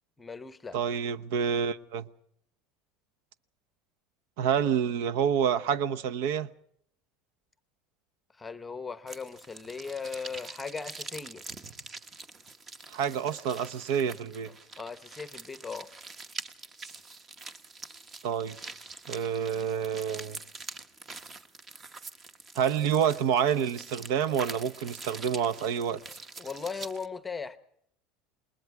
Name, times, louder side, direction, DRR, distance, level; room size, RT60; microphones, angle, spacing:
voice 1, 0.2-0.8 8.3-11.4 14.8-15.9 26.4-27.6, left 5 dB, 10° left, 0.8 m, -38 dB
voice 2, 0.7-2.1 4.4-6.5 12.9-14.5 18.2-18.6 19.1-20.4 22.6-26.0, right 8 dB, 65° right, 0.9 m, -28 dB
sound 1, 9.1-27.1, right 3 dB, 20° right, 0.9 m, -45 dB
28.5 x 21.0 x 4.8 m
cardioid pair, 175°, 0 cm